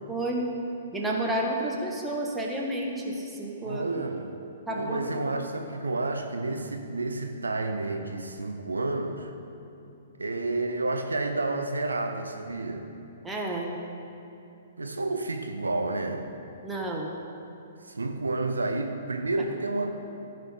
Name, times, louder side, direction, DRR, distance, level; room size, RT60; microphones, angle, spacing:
voice 1, 0.1-0.5 0.9-4.0 4.7-5.4 13.2-13.7 16.6-17.1, right 1 dB, 10° right, -1 dB, 1.2 m, -31 dB
voice 2, 3.6-4.3 4.7-9.3 10.2-12.9 14.8-16.3 17.8-20.0, right 2 dB, 80° right, 5 dB, 0.6 m, -30 dB
14.0 x 5.3 x 3.7 m, 2.8 s
figure-of-eight pair, 120°, 0 cm